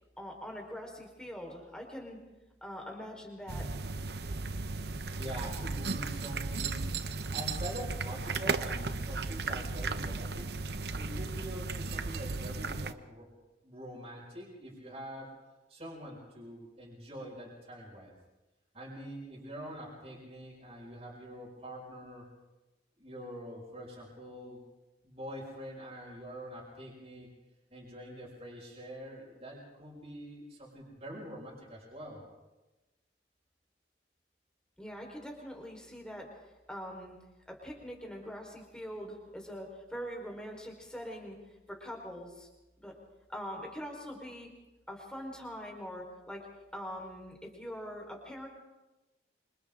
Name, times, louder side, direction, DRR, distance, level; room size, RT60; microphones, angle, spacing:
voice 1, 0.2-2.2 2.6-3.7 34.8-36.3 36.7-37.2 37.5-41.4 41.7-42.5 42.8-43.0 43.3-44.5 44.9-46.5 46.7-48.5, equal, 5° left, 0 dB, 4.5 m, -43 dB
sound 1, 3.5-12.9, right 3 dB, 65° right, 0.9 m, -35 dB
voice 2, 5.1-6.9 7.3-10.5 10.9-13.3 13.6-15.3 15.7-18.1 18.7-22.3 23.0-24.6 25.0-27.3 27.7-32.2, equal, 35° right, -5 dB, 6.2 m, -44 dB
27.5 x 26.5 x 3.8 m, 1.1 s
head